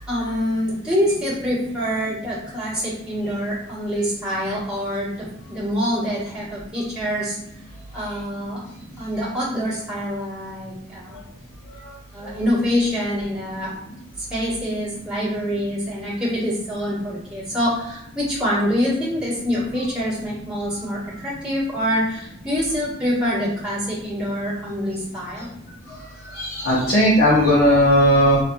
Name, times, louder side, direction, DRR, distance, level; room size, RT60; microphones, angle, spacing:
voice 1, 0.1-7.4 7.9-8.6 9.0-11.2 12.1-13.7 14.3-25.5, equal, 5° right, -11 dB, 1.1 m, -25 dB
voice 2, 26.4-28.4, equal, 50° left, -7 dB, 0.7 m, -16 dB
4.1 x 2.4 x 2.2 m, 0.78 s
head